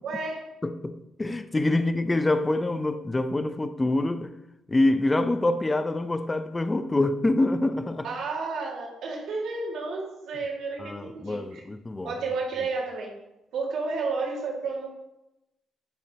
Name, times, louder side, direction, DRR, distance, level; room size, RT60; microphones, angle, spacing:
voice 1, 0.0-0.5 8.0-11.6 12.0-13.1 13.5-14.9, right 4 dB, 80° right, 2.1 m, -31 dB
voice 2, 0.6-4.4 4.7-8.1 10.8-12.1, left 2 dB, 20° left, 0.6 m, -25 dB
9.3 x 8.0 x 2.9 m
cardioid pair, 90°, 0 cm